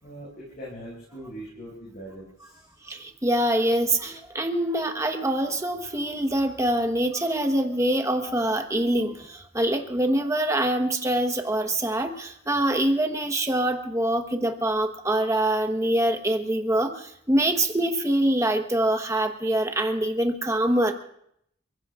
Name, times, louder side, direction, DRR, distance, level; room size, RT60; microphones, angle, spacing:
voice 1, 0.0-2.7, right 1 dB, 50° left, -5 dB, 6.2 m, -41 dB
voice 2, 2.8-20.9, right 1 dB, 15° right, 6 dB, 1.2 m, -24 dB
29.0 x 16.0 x 2.5 m, 0.73 s
head